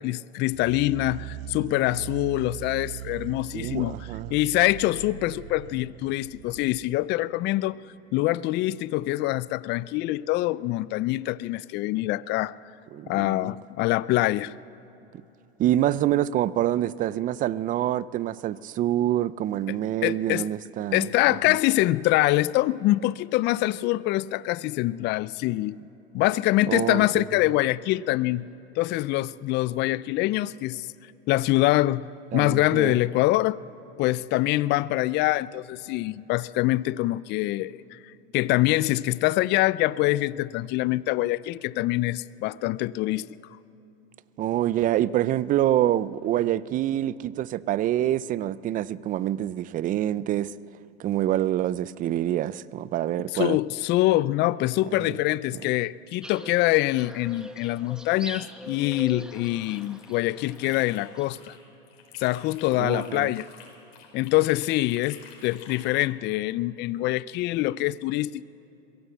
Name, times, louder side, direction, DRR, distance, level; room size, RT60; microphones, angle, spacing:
voice 1, 0.0-4.0 4.3-7.8 8.1-12.6 13.1-14.5 19.7-19.8 20.0-20.5 20.9-25.8 26.1-28.5 28.8-30.9 31.3-32.1 32.3-33.6 34.0-38.0 38.3-43.3 53.3-61.5 62.2-63.5 64.1-68.4, left 17 dB, 35° left, 0.4 m, -24 dB
sound 1, 0.5-7.0, right 11 dB, 65° right, 1.0 m, -40 dB
voice 2, 3.5-4.3 12.9-13.5 15.6-21.1 21.5-21.6 26.7-27.2 32.3-33.0 44.4-50.5 51.0-53.6 55.0-55.2 62.8-63.3, right 12 dB, 25° right, 0.4 m, -26 dB
sound 2, 56.2-61.3, equal, ahead, 1.1 m, -43 dB
sound 3, 59.4-61.6 61.9-66.1, left 7 dB, 60° left, 4.8 m, -50 dB
22.5 x 15.5 x 8.1 m
supercardioid pair, 115°, 32 cm